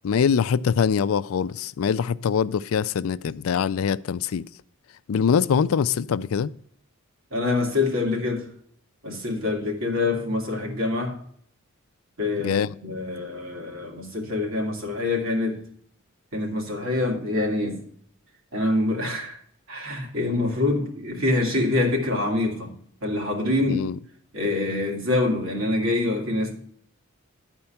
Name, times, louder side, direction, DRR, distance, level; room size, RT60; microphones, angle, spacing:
voice 1, 0.0-4.5 5.1-6.5 12.4-12.8 23.7-24.0, left 7 dB, 85° left, 0.4 m, -23 dB
voice 2, 7.3-8.5 9.0-11.2 12.2-15.6 16.3-17.8 18.5-19.4 19.7-22.7 23.0-23.9 24.3-26.5, left 2 dB, 80° right, 2.4 m, -25 dB
11.5 x 4.4 x 5.7 m
head